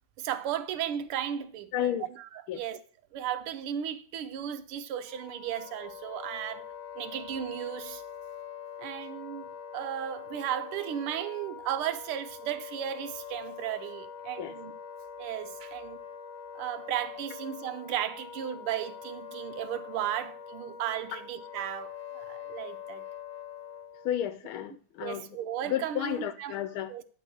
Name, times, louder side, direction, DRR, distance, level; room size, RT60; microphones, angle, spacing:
voice 1, 0.2-2.8 3.1-6.7 7.0-8.0 8.8-9.5 9.7-14.7 15.2-16.0 16.5-23.0 25.0-26.5 26.9-27.0, right 10 dB, 85° right, 1.7 m, -35 dB
voice 2, 1.7-2.1 2.5-2.6 14.4-14.5 24.0-25.3 25.6-26.9, left 11 dB, 80° left, 1.4 m, -32 dB
Wind instrument woodwind instrument, 5.0-24.1, left 7 dB, 55° left, 0.9 m, -44 dB
12.0 x 4.0 x 7.6 m
omnidirectional pair, 2.3 m